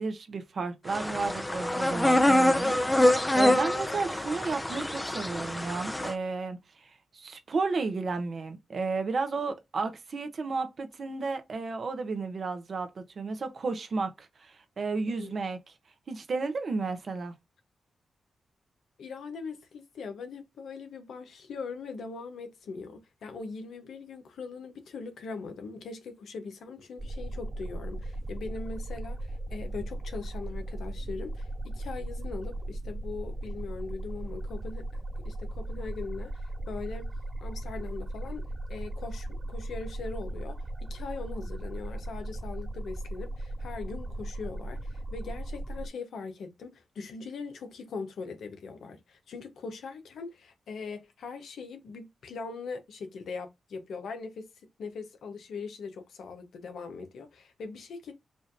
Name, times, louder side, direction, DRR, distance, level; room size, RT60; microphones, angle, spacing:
voice 1, 0.0-6.6 7.1-15.6 16.1-17.3, right 4 dB, 60° right, 0.9 m, -33 dB
sound 1, 0.9-6.1, left 1 dB, 15° left, 0.7 m, -25 dB
voice 2, 19.0-34.9 35.2-37.1 37.4-54.5 54.8-58.1, left 4 dB, 75° left, 0.9 m, -41 dB
sound 2, 27.0-45.9, right 1 dB, 25° right, 0.4 m, -37 dB
4.9 x 2.6 x 2.5 m
supercardioid pair, 45°, 0 cm